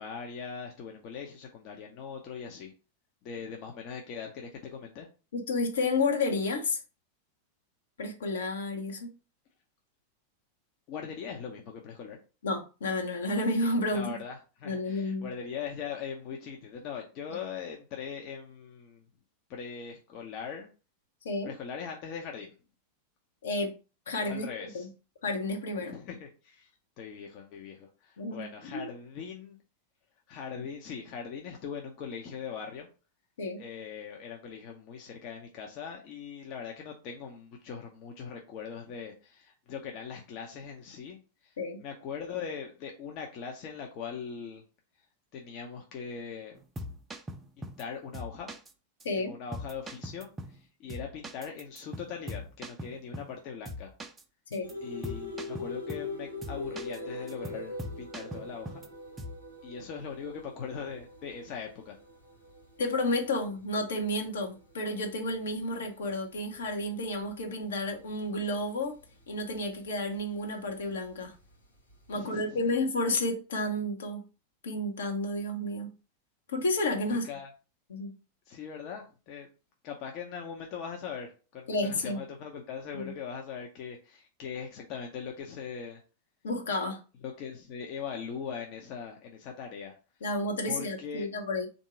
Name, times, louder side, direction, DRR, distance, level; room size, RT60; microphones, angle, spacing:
voice 1, 0.0-2.7 3.2-5.1 10.9-12.2 13.9-19.0 19.5-20.7 21.4-22.5 24.2-24.9 25.8-26.7 27.0-29.6 30.3-32.9 33.6-41.5 41.8-44.6 45.3-46.6 47.6-48.5 49.3-53.9 54.8-58.8 59.6-62.0 72.1-72.6 77.1-77.5 78.5-79.5 79.8-86.0 87.2-89.9 90.6-91.3, left 6 dB, 40° left, 0.7 m, -41 dB
voice 2, 5.3-6.8 8.0-9.1 12.4-14.2 14.6-15.3 21.2-21.5 23.4-23.7 24.1-24.9 25.2-25.9 28.2-28.5 28.7-28.9 33.4-33.6 41.6-41.8 49.0-49.3 54.5-54.7 62.8-68.9 69.3-71.3 72.1-74.3 74.6-75.9 76.5-77.2 77.9-78.1 81.7-82.2 82.9-83.1 86.4-87.0 90.2-91.7, left 2 dB, 65° left, 1.0 m, -31 dB
sound 1, 46.5-47.8 48.1-48.7 49.0-49.1 49.5-50.6 50.9-53.4 53.6-54.2 54.5-54.7 55.0-56.1 56.4-57.0 57.3-58.9 59.2-59.4, equal, 15° right, 0.5 m, -41 dB
sound 2, 54.6-70.2 70.7-72.1, left 2 dB, 85° left, 1.2 m, -43 dB
3.6 x 2.7 x 4.7 m
figure-of-eight pair, 90°, 0 cm